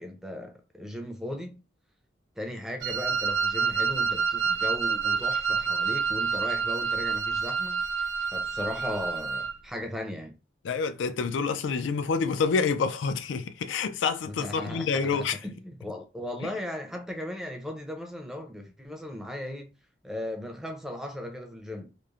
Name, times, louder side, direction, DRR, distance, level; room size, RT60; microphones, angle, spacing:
voice 1, 0.0-1.6 2.4-7.8 8.3-10.3 14.2-19.7 20.0-21.9, left 1 dB, 5° right, 0.4 m, -37 dB
Wind instrument woodwind instrument, 2.8-9.5, right 5 dB, 80° right, 0.4 m, -28 dB
voice 2, 10.6-15.4 16.4-16.5, left 5 dB, 90° left, 0.4 m, -28 dB
3.0 x 2.0 x 2.4 m
head